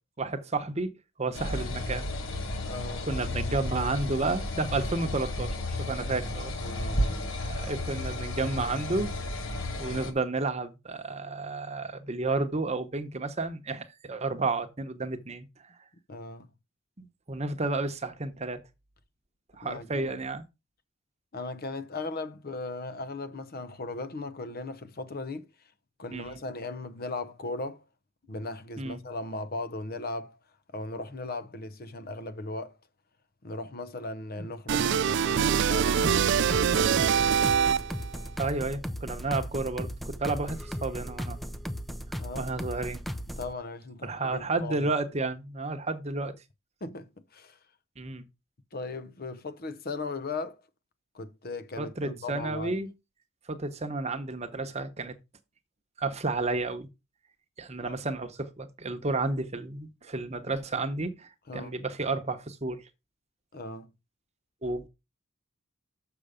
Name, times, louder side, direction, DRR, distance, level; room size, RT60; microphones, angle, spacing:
voice 1, 0.2-0.9 1.2-2.1 3.1-7.1 7.4-9.1 9.8-15.5 17.0-18.6 19.6-20.5 26.1-26.4 28.8-29.0 34.4-34.5 38.4-41.4 42.4-43.0 44.0-46.3 48.0-48.2 51.8-52.9 53.5-55.2 56.0-56.9 57.6-62.8 64.6-64.9, right 3 dB, 30° right, 1.0 m, -31 dB
sound 1, 1.3-10.1, left 1 dB, 70° left, 1.5 m, -33 dB
voice 2, 2.6-3.1 6.6-7.4 16.1-16.5 19.6-20.1 21.3-25.5 26.0-27.8 28.3-30.4 30.7-32.8 33.4-37.0 42.2-42.5 43.4-44.9 46.8-47.6 48.7-50.6 51.1-52.8 57.8-58.0 61.5-61.7 63.5-63.9, left 2 dB, 45° left, 0.8 m, -37 dB
sound 2, 34.7-38.1, right 7 dB, 60° right, 0.4 m, -24 dB
sound 3, 36.0-43.5, equal, ahead, 0.5 m, -36 dB
6.8 x 6.5 x 5.0 m
head